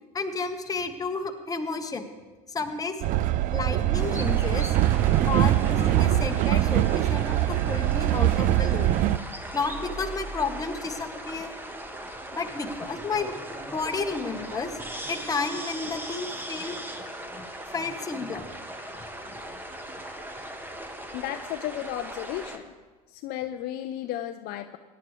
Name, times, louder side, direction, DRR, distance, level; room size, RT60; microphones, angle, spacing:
voice 1, 0.1-2.1 2.5-3.0 3.5-4.7 5.3-9.1 9.5-11.5 12.3-13.3 13.7-14.7 15.1-16.8 17.3-17.5 17.7-18.5, left 4 dB, 20° left, 5 dB, 1.2 m, -31 dB
Train, 3.0-9.2, right 14 dB, 40° right, 0.4 m, -23 dB
sound 1, 3.9-22.6, right 1 dB, 10° right, 1.2 m, -38 dB
voice 2, 21.1-22.7 23.1-24.8, left 12 dB, 50° left, 7 dB, 0.6 m, -34 dB
18.0 x 11.0 x 3.2 m, 1.3 s
hypercardioid pair, 100°, 20 cm